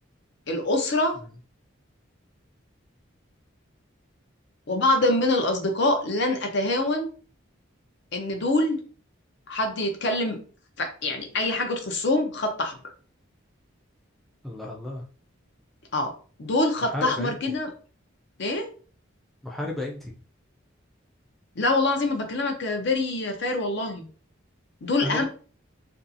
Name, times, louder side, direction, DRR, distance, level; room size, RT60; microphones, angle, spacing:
voice 1, 0.5-1.2 4.7-7.1 8.1-8.8 9.5-10.4 10.8-12.8 15.9-16.1 16.4-17.7 18.4-18.7 21.6-24.1 24.8-25.2, left 2 dB, 60° left, 5 dB, 0.5 m, -25 dB
voice 2, 14.4-15.0 16.9-17.3 19.4-20.0 25.0-25.2, left 1 dB, ahead, -2 dB, 0.3 m, -32 dB
2.6 x 2.4 x 2.5 m, 0.40 s
head